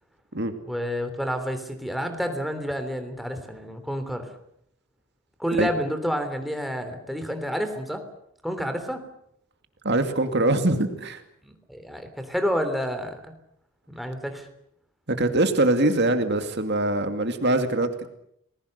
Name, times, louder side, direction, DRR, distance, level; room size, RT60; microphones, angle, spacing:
voice 1, 0.7-4.3 5.4-8.0 8.4-9.0 11.4-13.3 13.9-14.5, equal, ahead, 7 dB, 3.2 m, -29 dB
voice 2, 9.8-11.2 15.1-18.1, right 2 dB, 50° right, 7 dB, 2.4 m, -23 dB
30.0 x 20.5 x 6.7 m, 0.73 s
head